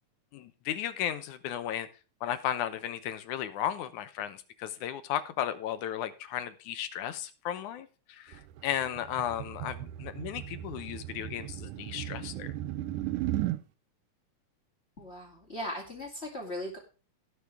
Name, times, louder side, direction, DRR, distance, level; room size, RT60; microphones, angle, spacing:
voice 1, 0.3-1.9 2.2-12.5, left 10 dB, 75° left, 2.2 m, -35 dB
sound 1, 8.3-13.6, right 14 dB, 85° right, 2.3 m, -36 dB
voice 2, 15.0-16.8, left 1 dB, 20° left, 2.5 m, -38 dB
17.5 x 6.8 x 3.4 m
omnidirectional pair, 3.7 m